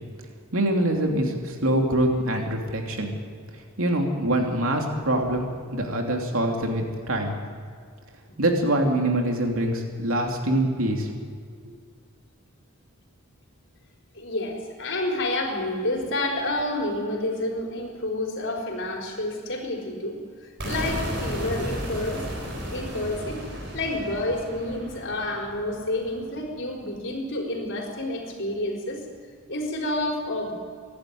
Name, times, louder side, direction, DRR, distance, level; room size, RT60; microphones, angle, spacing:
voice 1, 0.5-3.1 3.8-7.3 8.4-11.1, right 1 dB, 70° right, 2 dB, 3.0 m, -24 dB
voice 2, 14.1-22.2 22.7-23.4 23.7-29.0 29.5-30.5, left 1 dB, 60° left, 0 dB, 4.4 m, -29 dB
sound 1, 20.6-26.5, equal, 55° right, 4.8 m, -34 dB
24.5 x 11.5 x 9.4 m, 2.1 s
head